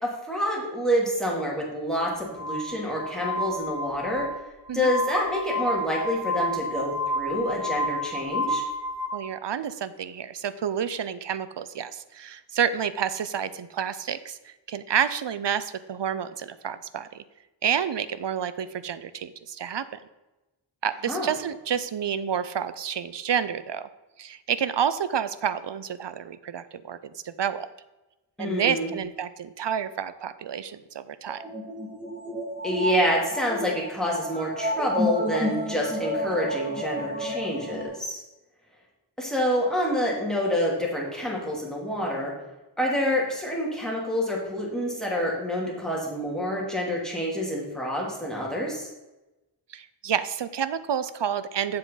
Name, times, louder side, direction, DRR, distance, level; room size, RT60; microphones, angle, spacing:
voice 1, 0.0-4.3 4.7-8.6 21.1-21.3 28.4-28.9 32.6-38.2 39.2-42.3 42.8-48.9, equal, ahead, -4 dB, 2.9 m, -27 dB
Glass, 2.3-9.1, equal, 35° left, 2.3 m, -30 dB
voice 2, 9.1-17.2 17.6-19.8 20.8-23.9 24.2-27.7 28.4-31.4 49.7-51.8, right 8 dB, 65° right, 14 dB, 0.6 m, -29 dB
sound 1, 31.2-37.8, equal, 15° right, 2.1 m, -31 dB
7.6 x 7.2 x 4.0 m, 1.0 s
wide cardioid pair, 45°, 46 cm